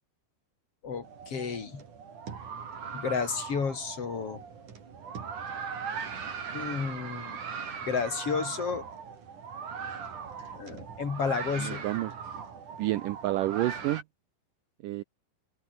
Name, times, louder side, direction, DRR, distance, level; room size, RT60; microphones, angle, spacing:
voice 1, 0.8-1.8 2.9-4.4 6.5-7.4 7.9-8.9 10.5-11.8, left 5 dB, 35° left, 4.2 m, -32 dB
sound 1, 1.0-14.0, right 6 dB, 50° right, 4.8 m, -39 dB
voice 2, 11.6-12.1 12.8-14.0 14.8-15.0, right 16 dB, 85° right, 1.9 m, -29 dB
open air
omnidirectional pair, 4.7 m